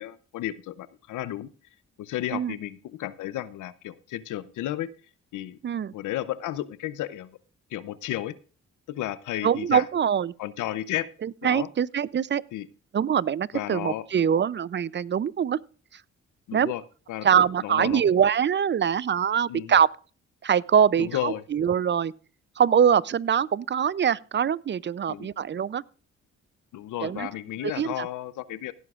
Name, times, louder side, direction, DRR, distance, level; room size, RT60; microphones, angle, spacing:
voice 1, 0.0-1.5 2.0-4.9 5.3-5.6 5.9-7.4 7.7-8.3 8.9-9.8 10.4-11.1 11.4-11.7 12.5-12.7 13.5-14.1 16.5-16.8 17.1-18.1 19.5-19.8 21.0-21.4 25.1-25.3 26.7-28.7, left 13 dB, 80° left, 0.7 m, -33 dB
voice 2, 9.4-10.3 11.2-12.4 12.9-15.6 16.5-16.7 17.2-19.9 20.4-22.1 22.6-25.8 27.0-27.3 27.6-28.1, right 8 dB, 40° right, 0.5 m, -23 dB
17.0 x 11.0 x 2.4 m
supercardioid pair, 65°, 30 cm